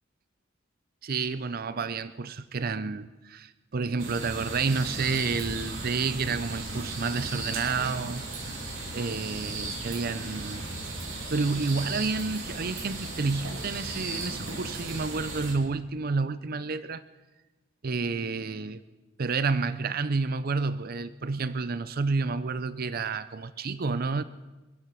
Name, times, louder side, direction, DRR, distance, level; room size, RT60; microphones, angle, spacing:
voice 1, 1.0-8.6 8.9-10.7 11.3-17.0 17.8-18.8 19.2-24.2, right 4 dB, 50° right, 0.6 m, -30 dB
sound 1, 4.0-15.5, right 2 dB, 85° right, 3.0 m, -36 dB
24.5 x 9.8 x 5.8 m
head